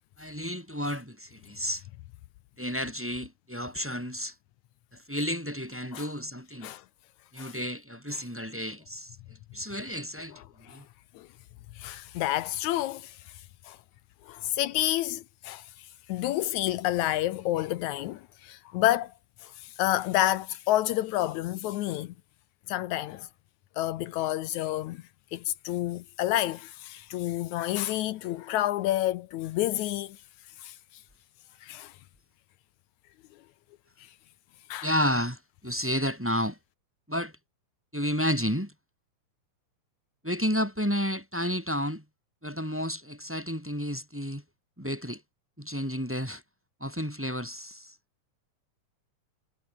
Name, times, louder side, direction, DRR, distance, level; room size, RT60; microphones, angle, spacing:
voice 1, 0.2-1.8 2.6-4.3 4.9-6.7 7.3-9.1 9.5-10.4 10.7-10.9 34.8-36.6 37.1-37.3 37.9-38.7 40.2-42.0 42.4-44.4 44.8-45.2 45.6-46.4 46.8-47.9, equal, 5° right, 3.5 m, -31 dB
voice 2, 11.8-13.2 13.7-13.8 14.3-15.7 16.1-19.1 19.4-22.1 22.7-23.3 23.8-25.0 25.3-30.2 30.6-30.8 31.6-31.9 34.7-34.9, left 14 dB, 80° left, 2.1 m, -29 dB
omnidirectional pair, 3.4 m